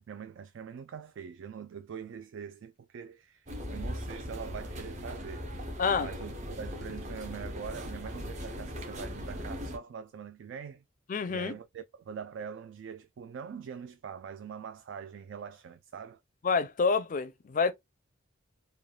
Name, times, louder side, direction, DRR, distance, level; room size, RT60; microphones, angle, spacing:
voice 1, 0.0-5.5 6.0-10.8 11.3-16.2, right 7 dB, 65° right, 0.3 m, -43 dB
sound 1, 3.5-9.8, equal, 35° right, 0.7 m, -39 dB
voice 2, 5.8-6.1 11.1-11.5 16.4-17.7, left 5 dB, 40° left, 0.4 m, -28 dB
3.2 x 2.2 x 2.2 m
head